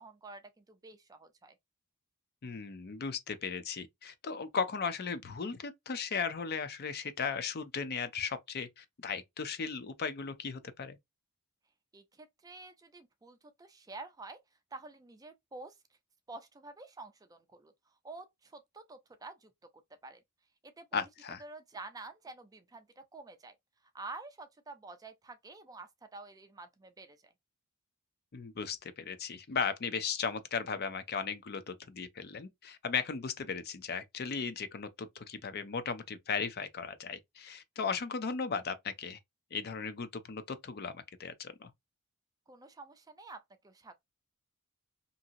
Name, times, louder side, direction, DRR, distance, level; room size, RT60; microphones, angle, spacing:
voice 1, 0.0-1.5 11.9-14.4 14.7-15.7 16.3-17.7 18.0-19.7 20.0-20.2 20.6-21.1 21.4-23.5 23.9-27.3 42.5-43.9, right 3 dB, 15° right, 0.4 m, -49 dB
voice 2, 2.4-11.0 20.9-21.4 28.3-39.2 39.5-41.7, left 5 dB, 45° left, 0.5 m, -36 dB
2.8 x 2.6 x 2.5 m
head